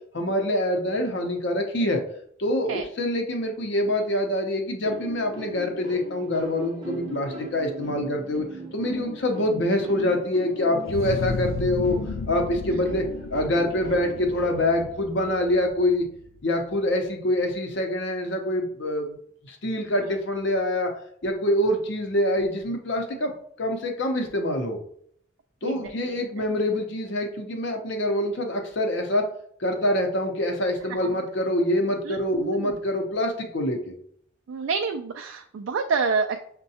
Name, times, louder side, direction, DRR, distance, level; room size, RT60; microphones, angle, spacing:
voice 1, 0.1-2.0 2.4-8.4 8.7-12.0 12.3-13.0 13.3-16.1 16.4-19.2 19.5-20.9 21.2-23.3 23.6-24.8 25.6-29.3 29.6-33.8, left 1 dB, 60° left, 4 dB, 0.7 m, -25 dB
sound 1, 4.8-15.0, equal, 20° right, 0.6 m, -39 dB
sound 2, 10.9-16.4, left 4 dB, 80° left, 0.3 m, -34 dB
voice 2, 25.6-26.2 31.0-31.2 32.1-32.7 34.5-36.4, right 5 dB, 70° right, 5 dB, 0.3 m, -28 dB
6.3 x 2.2 x 2.7 m, 0.65 s
head